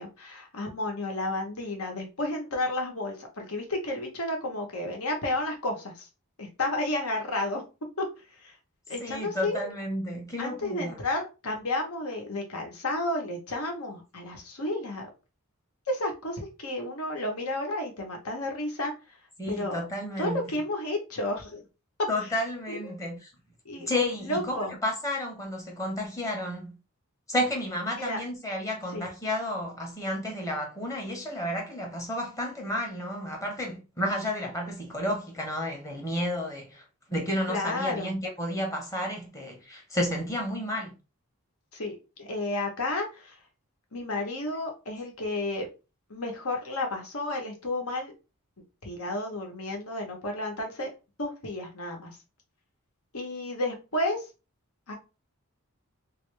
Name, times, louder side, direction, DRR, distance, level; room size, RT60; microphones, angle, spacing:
voice 1, 0.0-6.1 6.4-7.6 8.0-8.1 8.3-8.5 8.9-9.7 10.4-15.1 15.9-18.9 19.5-19.8 20.2-21.6 22.2-22.3 22.7-23.0 23.6-23.9 24.2-24.7 28.0-28.2 28.9-29.0 37.5-38.1 41.7-43.4 43.9-45.7 46.1-48.1 48.8-50.9 51.2-52.2 53.1-54.3 54.9-55.0, left 1 dB, 75° left, 1.1 m, -32 dB
voice 2, 9.0-10.9 19.4-20.4 22.1-23.3 23.9-26.8 27.3-36.8 37.1-40.9, left 1 dB, 15° left, 0.8 m, -31 dB
3.2 x 2.8 x 3.2 m
head